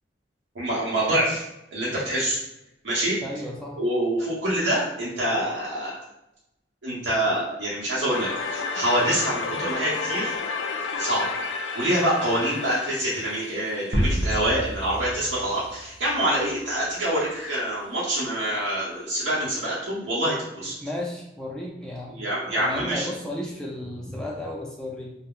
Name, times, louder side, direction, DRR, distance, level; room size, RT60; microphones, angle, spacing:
voice 1, 0.5-1.4 1.7-2.4 2.8-3.2 3.8-6.0 6.8-10.4 10.9-11.2 11.7-20.7 22.1-23.1, right 1 dB, 90° right, -7 dB, 0.8 m, -26 dB
voice 2, 3.2-3.8 20.8-22.2 22.5-25.1, left 1 dB, 5° left, -2 dB, 0.3 m, -33 dB
sound 1, 8.1-15.0, left 4 dB, 80° left, 0.4 m, -32 dB
sound 2, 13.9-16.4, equal, 55° right, 0.6 m, -28 dB
2.3 x 2.0 x 3.6 m, 0.87 s
head